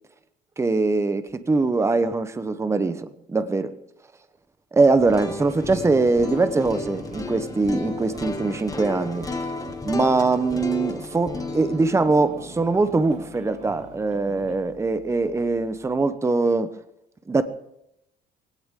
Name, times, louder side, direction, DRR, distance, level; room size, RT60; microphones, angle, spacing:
voice 1, 0.6-3.7 4.7-9.3 9.8-16.7 17.3-17.4, right 3 dB, 15° right, 11 dB, 0.9 m, -22 dB
sound 1, 4.8-14.6, right 3 dB, 40° right, 5.1 m, -45 dB
sound 2, 4.9-14.9, left 3 dB, 20° left, 1.7 m, -34 dB
22.5 x 17.0 x 3.7 m, 0.82 s
cardioid pair, 110°, 17 cm